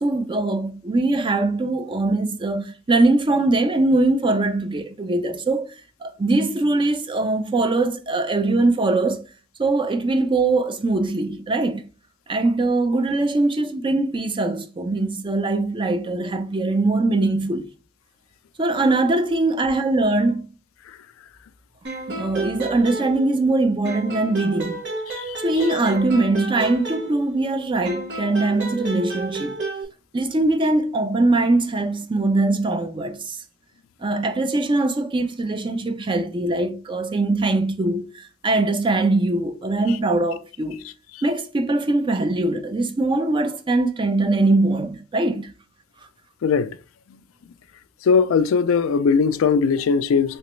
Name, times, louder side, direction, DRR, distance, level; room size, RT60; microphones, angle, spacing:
voice 1, 0.0-5.7 6.0-9.3 9.6-11.8 12.3-17.7 18.6-20.5 22.1-24.8 25.4-29.6 30.1-33.4 34.0-40.8 41.2-45.5, right 2 dB, 25° right, 0.4 m, -22 dB
sound 1, 21.8-23.5 23.8-27.5 27.8-29.8, right 3 dB, 60° right, 1.1 m, -31 dB
voice 2, 46.4-46.8 48.0-50.4, left 5 dB, 90° left, 0.4 m, -20 dB
3.2 x 2.9 x 3.1 m
head